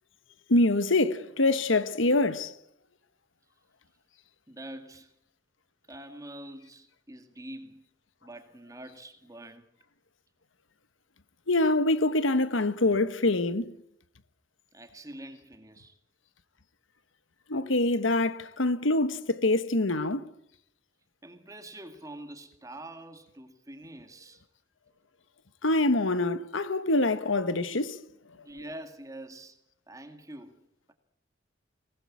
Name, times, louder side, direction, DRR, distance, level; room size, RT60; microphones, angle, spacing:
voice 1, 0.5-2.5 11.5-13.7 17.5-20.3 25.6-28.0, left 2 dB, 90° left, 1.4 m, -25 dB
voice 2, 4.5-5.1 5.9-7.8 8.2-9.7 14.7-15.9 21.2-24.4 28.4-29.6 29.9-30.6, right 1 dB, 15° right, 2.0 m, -45 dB
24.0 x 19.5 x 8.5 m
head